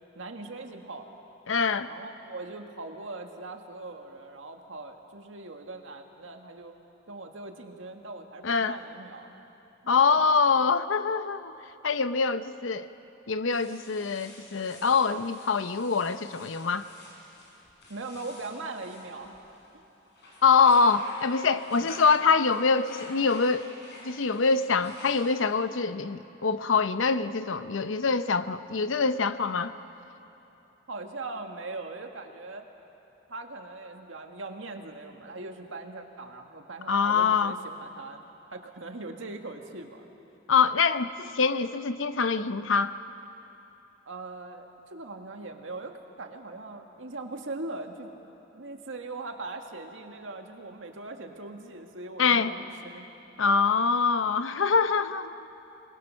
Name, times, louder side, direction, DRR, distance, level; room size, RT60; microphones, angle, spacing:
voice 1, 0.2-1.2 1.9-6.7 7.1-9.3 9.8-10.2 17.9-19.6 21.8-21.9 30.9-32.7 33.3-38.2 38.5-40.1 44.1-48.1 48.5-53.1, right 3 dB, 90° right, 4 dB, 1.8 m, -40 dB
voice 2, 1.5-1.9 8.4-8.8 9.9-11.5 11.8-12.9 13.3-16.9 20.4-23.7 24.0-29.7 36.9-37.5 40.5-42.9 52.2-52.5 53.4-55.4, left 5 dB, 85° left, 11 dB, 0.7 m, -24 dB
sound 1, 13.5-19.7 20.1-25.6, left 1 dB, 60° left, 5.9 m, -49 dB
27.5 x 20.5 x 6.4 m, 3.0 s
head